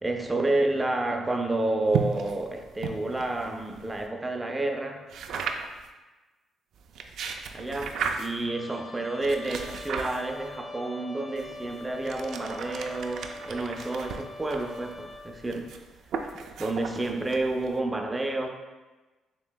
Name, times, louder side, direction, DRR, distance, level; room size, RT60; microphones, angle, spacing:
voice 1, 0.0-5.0 7.5-15.8 16.6-18.5, right 2 dB, 15° right, 3 dB, 0.5 m, -30 dB
sound 1, 1.9-4.1 5.1-5.9 6.8-8.5 9.2-10.6 11.4-17.8, right 6 dB, 75° right, 0.3 m, -36 dB
Trumpet, 8.5-15.4, left 2 dB, 40° left, 0.6 m, -43 dB
6.8 x 3.0 x 2.2 m, 1.2 s
cardioid pair, 90°, 0 cm